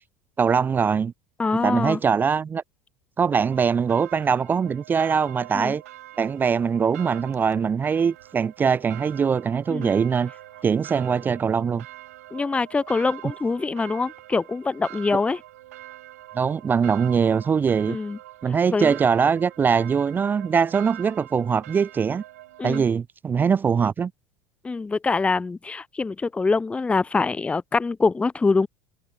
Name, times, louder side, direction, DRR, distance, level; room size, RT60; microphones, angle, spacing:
voice 1, 0.4-1.1 1.5-2.6 3.2-5.8 6.2-10.3 10.6-11.9 16.3-18.0 18.4-22.2 22.6-24.1, right 6 dB, 25° right, 0.3 m, -22 dB
voice 2, 1.4-2.0 5.5-5.8 9.7-9.9 12.3-15.4 17.9-18.2 18.7-18.9 22.6-22.8 24.6-28.7, left 4 dB, 15° left, 0.6 m, -24 dB
sound 1, 3.5-22.8, right 15 dB, 85° right, 0.7 m, -44 dB
hypercardioid pair, 85°, 8 cm